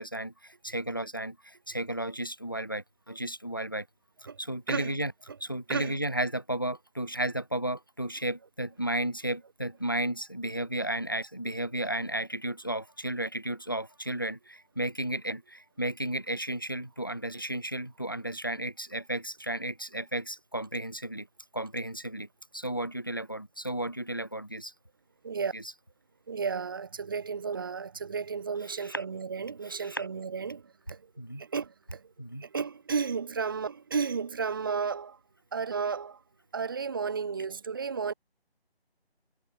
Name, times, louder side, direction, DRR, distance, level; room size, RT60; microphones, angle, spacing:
voice 1, 0.0-3.9 4.4-5.1 5.4-21.3 21.5-22.3 22.5-24.7 25.5-25.6 28.8-29.0 29.7-30.1 31.2-31.4 32.2-32.4, right 1 dB, 20° left, 0.8 m, -33 dB
voice 2, 4.7-5.0 5.7-6.0 25.2-25.5 26.3-31.1 31.4-32.1 32.4-35.2 35.5-36.2 36.5-38.1, right 5 dB, 20° right, 3.6 m, -33 dB
figure-of-eight pair, 175°, 32 cm